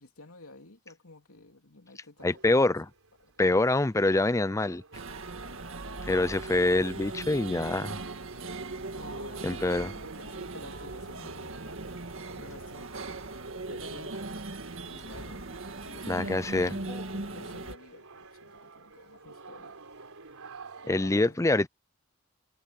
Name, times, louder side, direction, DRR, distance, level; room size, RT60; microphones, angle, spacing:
voice 1, 0.0-2.6 3.2-3.3 8.9-11.6 12.3-12.9 13.7-14.2 14.9-19.8 20.8-21.4, left 2 dB, 75° left, 3.1 m, -51 dB
voice 2, 2.2-2.9 3.4-4.8 6.0-8.0 9.4-9.9 16.1-16.7 20.9-21.7, left 2 dB, 15° left, 0.5 m, -25 dB
sound 1, 2.2-21.1, right 3 dB, 80° right, 3.8 m, -51 dB
sound 2, 4.9-17.7, right 3 dB, 60° right, 1.9 m, -39 dB
head